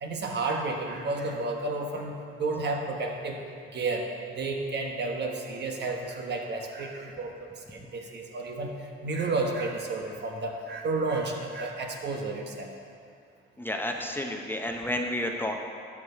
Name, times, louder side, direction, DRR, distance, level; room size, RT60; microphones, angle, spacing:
voice 1, 0.0-2.1 2.4-3.4 3.7-4.0 4.4-7.3 7.7-8.7 9.0-12.7, right 3 dB, 60° right, 2 dB, 1.2 m, -31 dB
voice 2, 13.6-15.6, left 1 dB, 10° left, 2 dB, 0.7 m, -31 dB
12.0 x 4.8 x 5.0 m, 2.4 s
cardioid pair, 90°, 20 cm